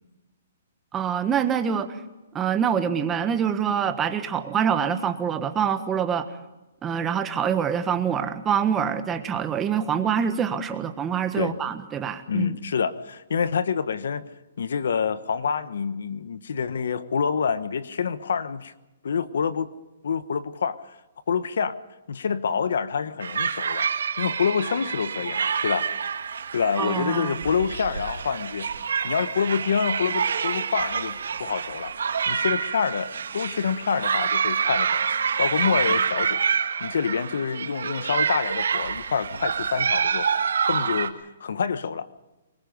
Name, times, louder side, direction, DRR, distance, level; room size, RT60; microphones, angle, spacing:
voice 1, 0.9-1.9 2.3-6.3 6.8-12.6 26.8-27.3, right 8 dB, 15° right, 8 dB, 1.5 m, -25 dB
voice 2, 12.3-14.3 14.6-18.7 19.0-19.7 20.0-20.8 21.3-21.8 22.1-23.9 24.2-25.9 26.5-28.7 29.0-31.9 32.3-35.0 35.4-36.5 36.8-40.3 40.7-42.1, left 6 dB, 75° left, 13 dB, 1.2 m, -27 dB
sound 1, 23.2-41.1, right 6 dB, 80° right, 1.8 m, -27 dB
24.0 x 21.0 x 5.4 m, 1.1 s
hypercardioid pair, 155°, 0 cm